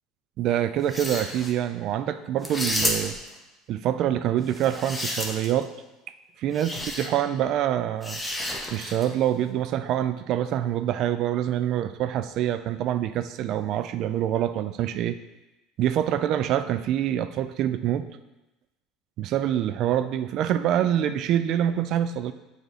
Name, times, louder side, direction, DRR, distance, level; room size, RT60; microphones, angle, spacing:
voice 1, 0.4-3.1 3.7-5.7 6.4-8.2 8.7-15.2 15.8-18.1 19.2-22.3, right 11 dB, 60° right, 11 dB, 0.5 m, -25 dB
sound 1, 0.8-1.5 2.4-3.3 4.5-5.6 6.5-7.1 8.0-9.1, left 1 dB, 5° left, 1.2 m, -31 dB
6.7 x 4.5 x 4.9 m, 1.0 s
supercardioid pair, 90°, 0 cm